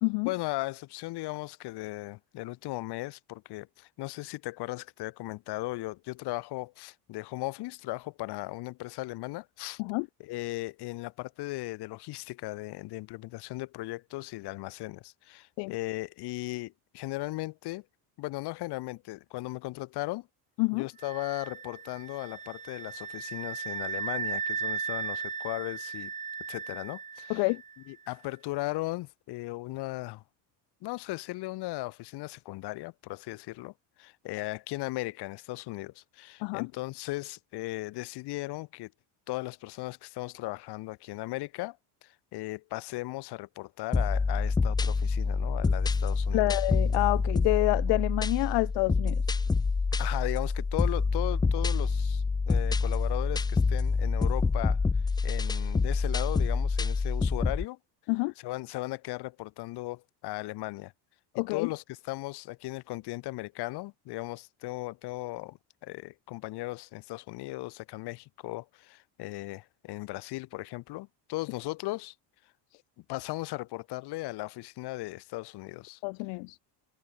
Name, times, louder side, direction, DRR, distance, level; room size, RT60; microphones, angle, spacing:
voice 1, 0.2-9.8 10.2-17.8 18.2-20.3 20.7-26.1 26.5-27.5 27.9-30.2 30.8-38.9 39.3-41.8 42.0-46.4 50.0-54.8 55.2-57.8 58.4-60.9 61.5-72.1 73.1-76.0, left 20 dB, 65° left, 3.1 m, -37 dB
sound 1, 21.0-27.8, right 6 dB, 15° right, 1.2 m, -36 dB
voice 2, 27.3-27.6 36.4-36.7 46.3-49.2 58.1-58.3 61.3-61.7 76.0-76.6, left 31 dB, 80° left, 0.5 m, -28 dB
sound 2, 43.9-57.6, left 4 dB, 10° left, 0.6 m, -27 dB
cardioid pair, 175°, 43 cm